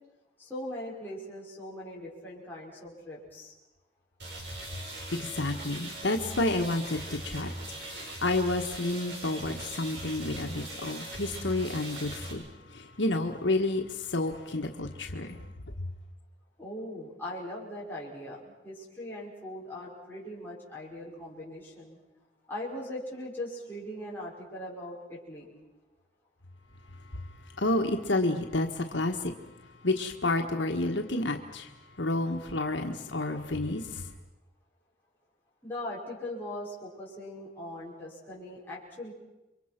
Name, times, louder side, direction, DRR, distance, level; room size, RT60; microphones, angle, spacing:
voice 1, 0.4-3.5 16.6-22.0 22.5-25.5 35.6-39.1, left 1 dB, 10° left, -6 dB, 5.6 m, -40 dB
sound 1, 4.2-12.3, right 1 dB, 70° right, 6.9 m, -40 dB
voice 2, 5.1-7.5 7.8-12.4 12.7-15.4 27.6-29.3 29.8-31.7 32.0-34.0, left 2 dB, 90° left, 3 dB, 1.6 m, -30 dB
29.0 x 24.0 x 6.1 m, 1.0 s
head